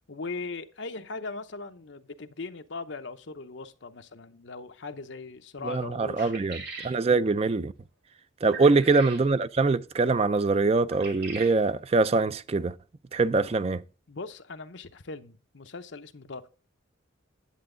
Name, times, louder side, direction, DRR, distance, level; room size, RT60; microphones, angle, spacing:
voice 1, 0.1-6.3 8.4-8.8 14.1-16.5, left 3 dB, 60° left, 0.8 m, -39 dB
voice 2, 5.6-7.7 8.4-12.8 13.1-13.8, right 3 dB, 30° right, 0.4 m, -24 dB
sound 1, 6.2-7.0 8.5-9.2 10.9-11.6, right 4 dB, 55° right, 2.7 m, -40 dB
10.0 x 7.8 x 3.8 m
head